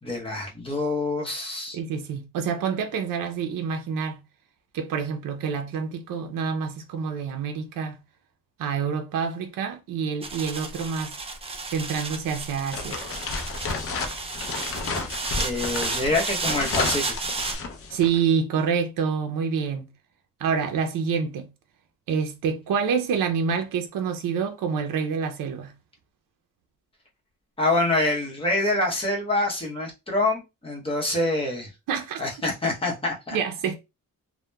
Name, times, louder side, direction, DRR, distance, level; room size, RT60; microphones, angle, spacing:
voice 1, 0.0-1.8 15.4-17.1 27.6-31.7 32.2-33.4, left 2 dB, 15° left, 0.8 m, -26 dB
voice 2, 1.7-4.2 4.7-8.0 8.6-11.2 11.7-13.0 17.9-19.9 20.4-21.5 22.1-25.7 31.9-32.2 33.3-33.7, right 6 dB, 75° right, 0.5 m, -27 dB
sound 1, 10.2-17.6, right 3 dB, 20° right, 0.4 m, -32 dB
sound 2, 12.7-18.2, left 4 dB, 45° left, 0.5 m, -32 dB
2.8 x 2.1 x 2.2 m
cardioid pair, 130°, 33 cm